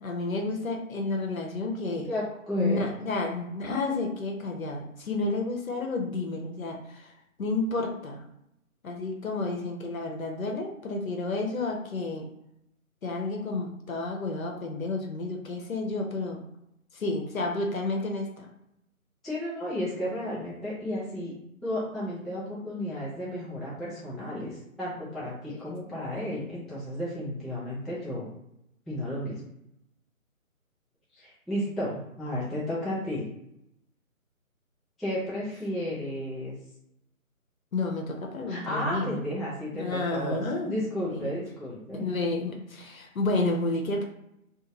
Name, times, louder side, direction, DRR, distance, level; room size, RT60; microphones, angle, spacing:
voice 1, 0.0-2.1 2.6-7.1 7.4-8.2 8.8-12.3 13.0-16.4 16.9-18.5 25.5-26.0 37.7-39.2 39.7-40.7 41.1-41.3 41.9-44.0, left 2 dB, 70° left, 2 dB, 0.7 m, -31 dB
voice 2, 2.1-3.1 19.2-21.3 21.6-28.3 28.9-29.4 31.1-33.3 35.0-36.5 38.5-42.1, equal, ahead, -9 dB, 0.4 m, -33 dB
2.5 x 2.5 x 2.9 m, 0.81 s
hypercardioid pair, 170°, 42 cm